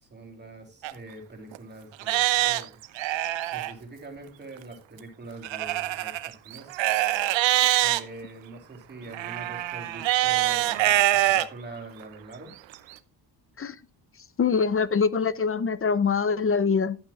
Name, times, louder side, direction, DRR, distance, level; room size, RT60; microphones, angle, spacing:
voice 1, 0.0-2.8 3.5-6.9 7.8-12.5, right 2 dB, 25° right, 3.2 m, -44 dB
Livestock farm animals working animals, 0.8-0.9 1.5-1.6 2.0-3.7 5.4-8.0 9.1-11.5 12.0-12.1 12.7-12.8, right 15 dB, 90° right, 0.8 m, -24 dB
voice 2, 14.4-17.0, left 5 dB, 30° left, 0.6 m, -24 dB
12.0 x 8.7 x 2.4 m
cardioid pair, 100°, 44 cm